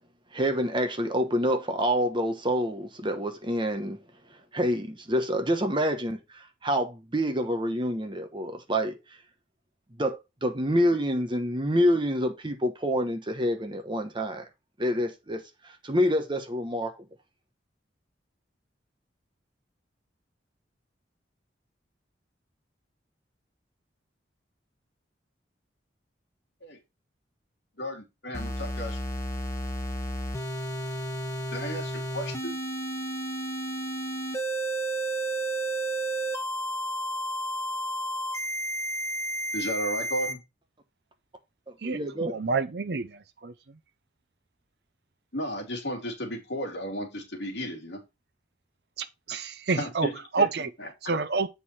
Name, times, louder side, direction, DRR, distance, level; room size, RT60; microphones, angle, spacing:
voice 1, 0.3-4.0 4.5-6.2 6.6-9.0 10.0-14.4 14.8-15.4 15.8-16.9 41.8-42.3, equal, 25° right, 1.1 m, -27 dB
voice 2, 27.8-29.0 31.5-32.6 39.5-40.4 45.3-48.0 49.7-50.9, equal, 65° left, 2.6 m, -34 dB
sound 1, 28.3-40.3, right 1 dB, 15° left, 1.2 m, -32 dB
voice 3, 41.8-43.5 49.0-50.1 50.3-50.7 51.0-51.5, right 4 dB, 60° right, 0.6 m, -28 dB
8.0 x 4.8 x 4.2 m
head